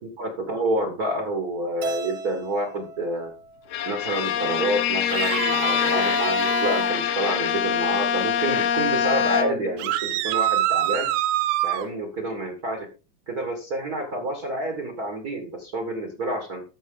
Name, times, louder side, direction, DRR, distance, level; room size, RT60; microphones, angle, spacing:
voice 1, 0.2-3.3 3.8-11.1 11.6-12.9 13.3-16.6, right 1 dB, 40° right, 5 dB, 1.5 m, -28 dB
Keyboard (musical), 1.8-4.2, right 3 dB, 65° right, 1.2 m, -36 dB
Bowed string instrument, 3.7-9.8, left 8 dB, 65° left, 1.7 m, -24 dB
sound 1, 5.1-6.9 9.8-11.9, right 13 dB, 80° right, 2.1 m, -25 dB
13.5 x 5.9 x 3.8 m, 0.33 s
omnidirectional pair, 4.0 m